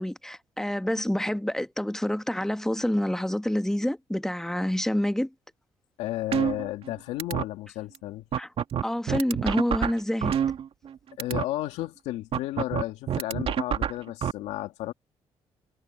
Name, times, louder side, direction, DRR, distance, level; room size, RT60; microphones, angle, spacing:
voice 1, 0.0-5.3 8.4-8.5 8.8-10.4, left 1 dB, 5° left, 1.2 m, -27 dB
voice 2, 6.0-8.2 11.2-14.9, left 15 dB, 85° left, 2.3 m, -33 dB
sound 1, 6.3-6.9 7.2-7.4 7.9-8.0 8.3-10.9 11.2-11.4 12.3-14.3, right 8 dB, 60° right, 2.1 m, -27 dB
supercardioid pair, 65°, 11 cm